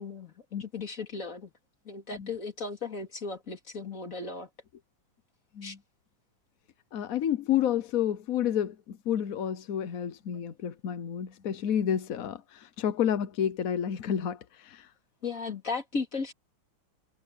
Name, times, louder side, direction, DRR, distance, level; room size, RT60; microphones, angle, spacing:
voice 1, 0.0-1.5 1.8-4.5 5.6-5.7 15.2-16.3, left 4 dB, 40° left, 3.3 m, -36 dB
voice 2, 6.9-14.9, left 9 dB, 55° left, 1.0 m, -30 dB
omnidirectional pair, 2.3 m